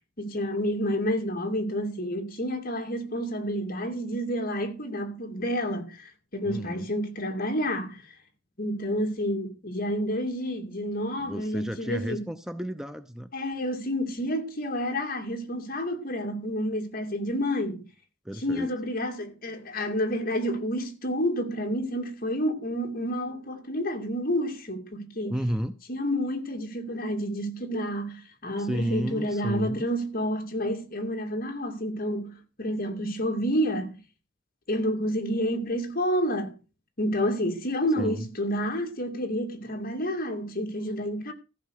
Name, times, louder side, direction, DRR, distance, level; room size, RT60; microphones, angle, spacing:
voice 1, 0.2-8.0 8.6-12.3 13.3-17.8 18.4-25.3 25.9-33.9 34.7-36.5 37.0-41.3, equal, 50° left, 2.6 m, -29 dB
voice 2, 6.4-6.9 11.2-13.3 18.2-18.7 25.3-25.7 28.6-29.9 38.0-38.3, equal, 5° right, 0.6 m, -32 dB
14.5 x 5.9 x 6.6 m
head